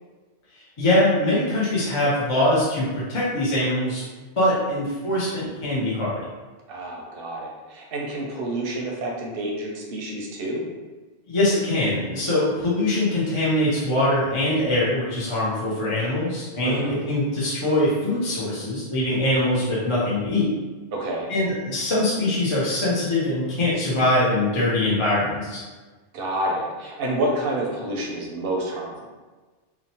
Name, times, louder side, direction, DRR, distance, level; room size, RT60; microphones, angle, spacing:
voice 1, 0.8-4.0 4.4-6.2 11.3-20.5 21.3-25.6, left 1 dB, 35° left, -8 dB, 0.5 m, -23 dB
voice 2, 6.7-10.6 16.6-17.0 20.9-21.3 26.1-28.9, right 1 dB, 60° right, -1 dB, 0.7 m, -28 dB
2.9 x 2.0 x 2.8 m, 1.3 s
omnidirectional pair, 1.2 m